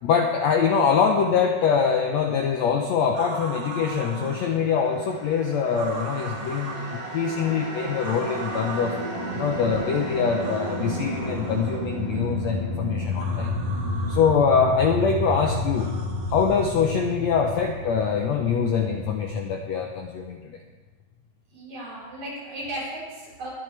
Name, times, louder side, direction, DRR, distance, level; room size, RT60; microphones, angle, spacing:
voice 1, 0.0-9.0 9.3-13.5 14.1-15.9 16.3-20.6, left 6 dB, 80° left, 3 dB, 1.6 m, -24 dB
sound 1, 3.1-4.5 5.7-6.9 8.0-9.0 10.4-11.8 13.1-14.3 15.7-17.0, right 4 dB, 90° right, 3.7 m, -39 dB
sound 2, 4.8-20.0, left 1 dB, 15° right, 4.6 m, -31 dB
voice 2, 21.5-23.5, right 1 dB, 50° right, -7 dB, 5.6 m, -35 dB
20.5 x 10.0 x 3.3 m, 1.3 s
omnidirectional pair, 4.1 m